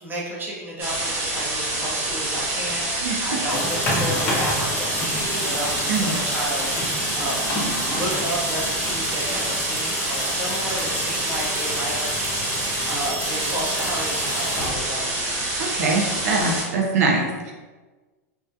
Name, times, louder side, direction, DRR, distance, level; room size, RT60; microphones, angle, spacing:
voice 1, 0.0-12.2 12.8-15.3, right 1 dB, 20° right, -4 dB, 0.7 m, -32 dB
sound 1, 0.8-16.6, right 2 dB, 55° right, 1.0 m, -27 dB
voice 2, 3.0-3.4 5.9-6.2 15.6-17.5, right 3 dB, 75° right, 0 dB, 0.5 m, -23 dB
sound 2, 3.3-15.2, left 1 dB, 25° left, 0.6 m, -30 dB
2.2 x 2.1 x 2.6 m, 1.3 s
hypercardioid pair, 115°, 9 cm